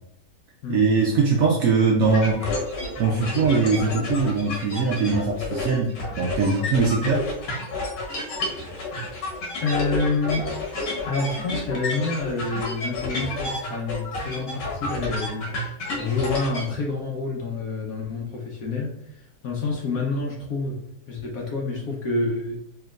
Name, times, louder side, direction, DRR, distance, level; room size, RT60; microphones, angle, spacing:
voice 1, 0.7-2.4 3.0-7.2, right 4 dB, 70° right, 0 dB, 0.9 m, -21 dB
sound 1, 2.0-16.7, left 2 dB, 85° left, 1.7 m, -30 dB
voice 2, 8.4-8.8 9.6-10.5 11.1-15.5 16.0-20.8 21.1-22.6, left 3 dB, 65° left, -1 dB, 1.0 m, -28 dB
4.5 x 2.9 x 2.4 m, 0.77 s
omnidirectional pair, 1.9 m